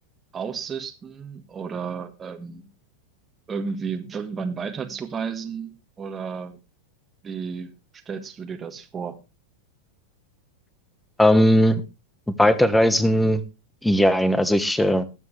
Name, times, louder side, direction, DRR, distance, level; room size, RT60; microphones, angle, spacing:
voice 1, 0.3-2.6 3.5-5.7 6.0-6.6 7.2-9.2, right 6 dB, 20° right, 1.5 m, -32 dB
voice 2, 11.2-11.8 12.4-13.4 13.8-15.0, equal, 5° left, 1.2 m, -18 dB
20.5 x 7.8 x 3.3 m
figure-of-eight pair, 95°, 0 cm